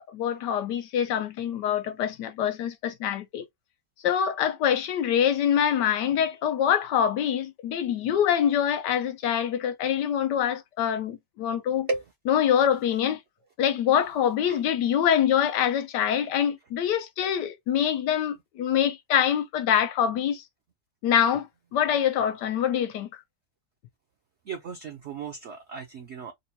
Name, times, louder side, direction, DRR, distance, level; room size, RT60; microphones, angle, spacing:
voice 1, 0.0-3.4 4.0-11.9 12.3-13.2 13.6-20.4 21.0-23.2, left 9 dB, 90° left, 1.3 m, -25 dB
voice 2, 24.5-26.3, right 3 dB, 65° right, 0.7 m, -34 dB
4.0 x 2.2 x 2.7 m
omnidirectional pair, 1.8 m